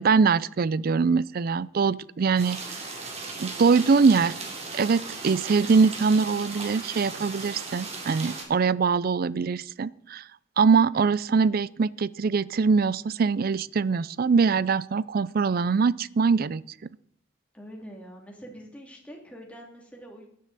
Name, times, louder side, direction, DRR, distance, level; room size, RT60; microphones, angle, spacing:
voice 1, 0.0-2.6 3.4-4.4 4.7-10.2 10.6-16.6, right 5 dB, 50° right, 20 dB, 0.4 m, -23 dB
sound 1, 2.4-8.4, right 3 dB, 35° right, 2.8 m, -37 dB
voice 2, 17.5-20.3, equal, 5° left, 0 dB, 2.6 m, -44 dB
16.5 x 10.5 x 4.1 m, 0.69 s
head